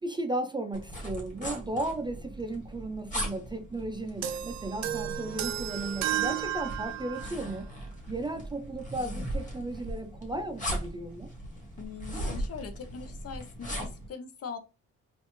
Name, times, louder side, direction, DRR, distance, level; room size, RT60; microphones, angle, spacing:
voice 1, 0.0-7.7 8.1-11.3, right 2 dB, 15° right, 0.5 m, -35 dB
sound 1, 0.7-14.1, equal, 25° left, 1.8 m, -39 dB
sound 2, 4.2-7.4, right 11 dB, 65° right, 0.5 m, -33 dB
voice 2, 11.8-14.6, left 6 dB, 50° left, 0.8 m, -41 dB
4.2 x 2.6 x 3.1 m
cardioid pair, 90°, 30 cm